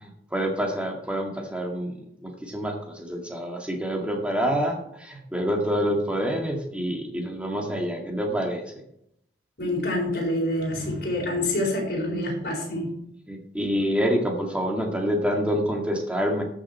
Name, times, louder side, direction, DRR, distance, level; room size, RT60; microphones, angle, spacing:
voice 1, 0.0-1.9 2.2-8.6 13.3-16.4, equal, 5° right, 1 dB, 1.8 m, -27 dB
voice 2, 9.6-12.9, left 1 dB, 60° left, -2 dB, 4.5 m, -27 dB
13.5 x 6.4 x 4.3 m, 0.75 s
head